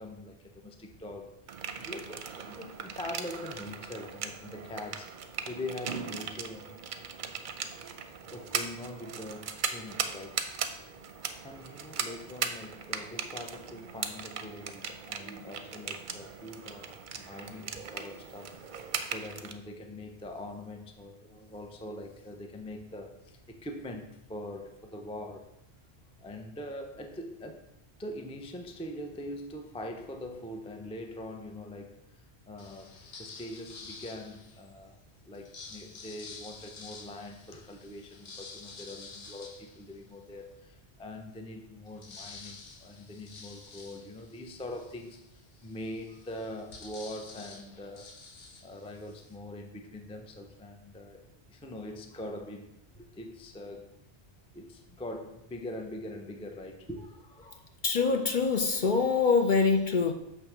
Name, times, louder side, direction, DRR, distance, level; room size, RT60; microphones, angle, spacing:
voice 1, 0.0-5.1 5.5-6.7 8.3-10.4 11.4-18.6 19.0-25.5 26.2-27.7 28.0-32.2 32.5-48.2 48.6-52.7 52.9-53.9 54.5-57.7, left 1 dB, 10° left, 4 dB, 0.3 m, -43 dB
sound 1, 1.5-19.5, right 6 dB, 55° right, 0.7 m, -38 dB
sound 2, 32.6-34.7 35.3-40.5 41.0-41.1 41.3-49.3, left 4 dB, 90° left, 1.2 m, -49 dB
voice 2, 57.8-60.1, left 4 dB, 55° left, 6 dB, 0.7 m, -24 dB
6.7 x 3.3 x 5.9 m, 0.83 s
omnidirectional pair, 1.1 m